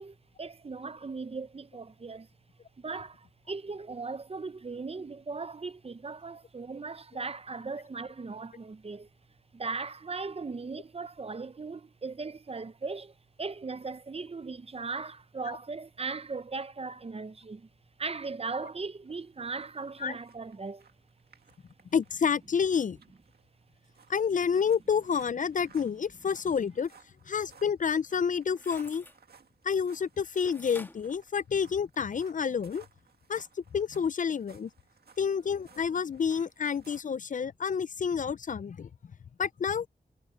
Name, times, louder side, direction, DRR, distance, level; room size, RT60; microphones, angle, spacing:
voice 1, 0.0-2.3 2.8-9.1 9.5-17.7 18.0-20.9, right 4 dB, 40° right, 0.7 m, -38 dB
sound 1, 19.1-37.1, right 5 dB, 75° right, 1.9 m, -60 dB
voice 2, 21.9-23.0 24.1-26.9 27.3-29.0 29.6-32.9 33.3-34.7 35.2-38.9 39.4-39.9, left 6 dB, 55° left, 0.4 m, -29 dB
sound 2, 28.5-29.2 30.5-32.1 32.5-32.6, left 1 dB, 10° left, 1.7 m, -50 dB
wide cardioid pair, 70°, 16 cm